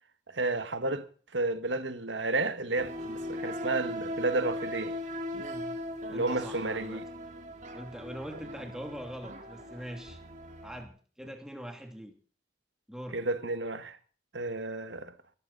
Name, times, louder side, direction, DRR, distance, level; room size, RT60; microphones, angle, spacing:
voice 1, 0.3-1.1 1.3-5.0 6.1-7.1 13.1-14.0 14.3-15.1, right 2 dB, 85° right, 1.8 m, -31 dB
sound 1, 2.8-10.8, left 1 dB, 40° right, 3.1 m, -39 dB
voice 2, 6.1-7.0 7.7-10.2 10.6-12.1 12.9-13.2, equal, 5° right, 2.7 m, -42 dB
20.5 x 14.5 x 4.1 m
head